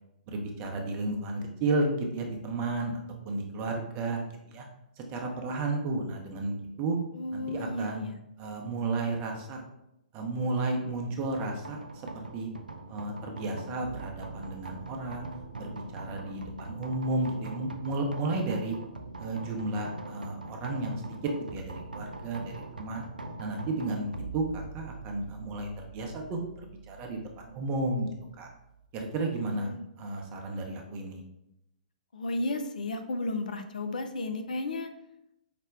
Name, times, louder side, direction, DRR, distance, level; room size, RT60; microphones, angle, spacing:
voice 1, 0.3-3.0 3.2-4.2 4.5-4.6 5.0-7.0 7.3-8.1 8.4-9.6 10.1-11.8 12.1-12.5 12.9-15.3 15.6-18.8 19.2-23.0 23.4-28.1 28.4-28.5 28.9-29.7 30.0-31.2, right 2 dB, 30° right, 2 dB, 0.7 m, -33 dB
voice 2, 7.2-8.2 29.5-29.8 32.1-34.9, left 2 dB, 65° left, 7 dB, 0.4 m, -33 dB
sound 1, 11.6-28.9, right 3 dB, 85° right, 0.4 m, -43 dB
4.9 x 2.2 x 3.3 m, 0.84 s
figure-of-eight pair, 120°, 5 cm